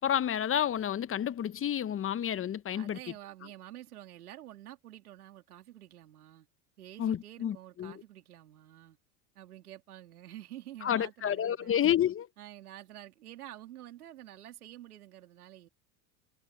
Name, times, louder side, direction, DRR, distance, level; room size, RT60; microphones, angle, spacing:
voice 1, 0.0-3.0 7.0-7.9 10.8-12.3, left 10 dB, 30° left, 0.9 m, -30 dB
voice 2, 2.7-6.5 6.8-9.0 9.3-11.8 12.4-15.7, right 13 dB, 85° right, 3.4 m, -49 dB
hypercardioid pair, 85°, 43 cm